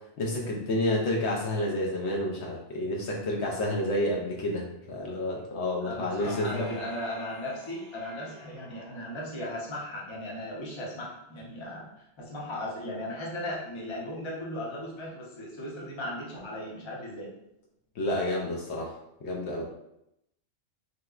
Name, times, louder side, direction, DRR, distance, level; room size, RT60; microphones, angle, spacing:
voice 1, 0.2-6.7 18.0-19.7, left 1 dB, 70° left, -1 dB, 0.9 m, -30 dB
voice 2, 5.8-17.3, left 1 dB, 30° left, -4 dB, 0.6 m, -37 dB
sound 1, 6.2-9.6 10.1-10.2, equal, 30° right, 0.7 m, -47 dB
3.1 x 2.9 x 2.3 m, 0.80 s
omnidirectional pair, 1.3 m